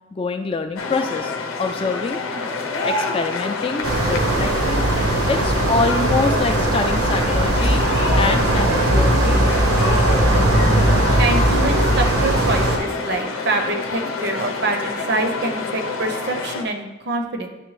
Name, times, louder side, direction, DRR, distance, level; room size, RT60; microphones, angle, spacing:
voice 1, 0.1-2.2 2.8-4.9 5.3-7.8 8.2-9.4 9.8-10.5, left 4 dB, 25° left, 6 dB, 0.3 m, -26 dB
sound 1, 0.8-16.6, left 4 dB, 80° left, 0.7 m, -27 dB
sound 2, 3.8-12.8, right 1 dB, 80° right, 0.9 m, -19 dB
voice 2, 11.2-17.5, right 2 dB, 50° right, 5 dB, 0.6 m, -25 dB
9.7 x 3.3 x 3.2 m, 1.0 s
head